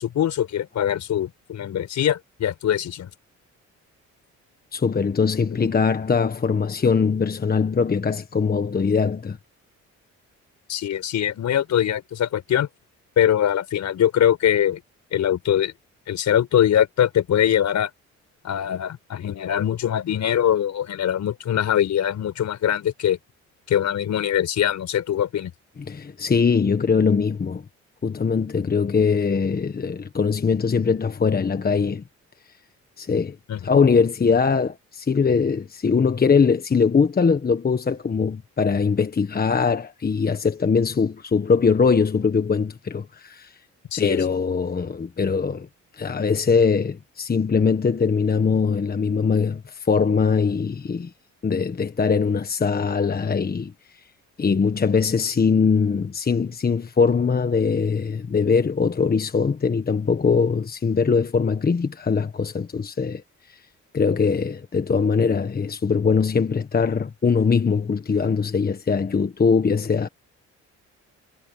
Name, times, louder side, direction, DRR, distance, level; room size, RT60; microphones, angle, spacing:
voice 1, 0.0-3.1 10.7-12.7 13.2-14.8 15.1-15.7 16.1-17.9 18.4-23.2 23.7-25.5 33.5-33.8 43.9-44.2, left 10 dB, 65° left, 5.5 m, -22 dB
voice 2, 4.7-9.4 25.9-27.6 28.0-32.0 33.0-33.4 33.6-43.5 44.0-45.7 46.0-51.1 51.4-53.7 54.4-63.2 63.5-63.6 63.9-70.1, left 5 dB, 30° left, 1.4 m, -21 dB
cardioid pair, 90°, 30 cm